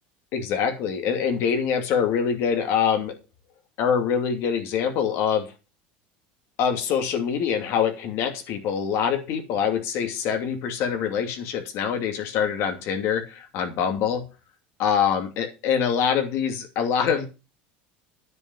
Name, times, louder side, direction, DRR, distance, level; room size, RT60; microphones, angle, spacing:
voice 1, 0.3-3.1 3.8-5.5 6.6-14.3 14.8-17.3, left 7 dB, 60° left, 6 dB, 2.5 m, -24 dB
9.6 x 5.6 x 7.4 m, 0.31 s
supercardioid pair, 115°, 5 cm